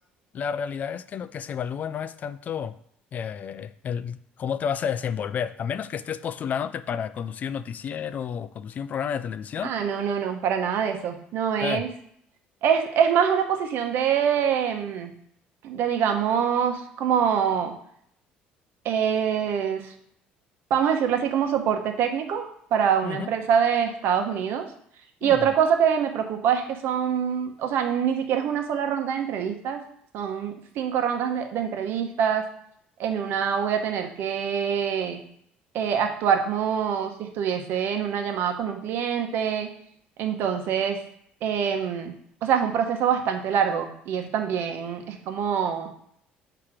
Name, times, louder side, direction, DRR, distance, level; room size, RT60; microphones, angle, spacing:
voice 1, 0.3-2.7 3.1-9.8 11.6-11.9 23.0-23.3 25.2-25.5, left 7 dB, 45° left, 14 dB, 0.3 m, -31 dB
voice 2, 9.6-11.9 12.6-15.1 15.6-17.7 18.8-19.9 20.7-24.7 25.2-29.8 30.1-32.5 33.0-35.2 35.7-39.7 40.2-41.0 41.4-42.1 42.4-45.9, right 8 dB, 70° right, 5 dB, 1.0 m, -25 dB
7.3 x 2.9 x 4.9 m, 0.68 s
cardioid pair, 105°, 4 cm